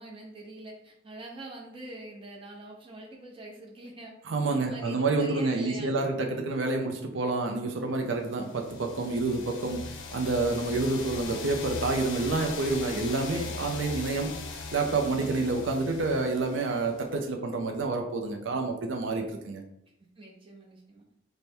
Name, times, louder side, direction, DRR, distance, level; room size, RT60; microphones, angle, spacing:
voice 1, 0.0-4.1 4.5-5.9 20.2-21.1, right 1 dB, 25° right, -1 dB, 0.7 m, -44 dB
voice 2, 4.3-19.6, right 3 dB, 70° right, 3 dB, 0.4 m, -28 dB
sound 1, 8.3-17.1, left 4 dB, 80° left, 0.5 m, -40 dB
3.3 x 2.1 x 4.2 m, 0.80 s
head